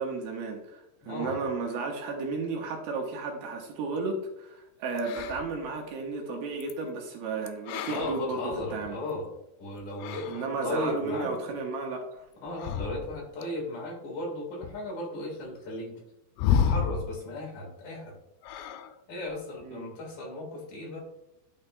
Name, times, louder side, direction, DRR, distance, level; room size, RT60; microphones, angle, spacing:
voice 1, 0.0-9.0 10.3-12.3 19.6-19.9, right 3 dB, 75° right, 1 dB, 2.5 m, -33 dB
voice 2, 1.0-1.4 7.9-9.3 9.6-11.3 12.4-16.0 16.6-18.2 19.1-21.0, left 1 dB, 55° left, -2 dB, 2.6 m, -36 dB
sound 1, 5.0-5.7 6.5-6.7 7.5-9.1 9.8-10.5 12.5-13.4 14.6-14.7 16.4-17.2 18.4-19.0 19.3-19.6, left 8 dB, 90° left, 2.2 m, -30 dB
11.0 x 6.0 x 2.2 m, 0.87 s
omnidirectional pair, 5.0 m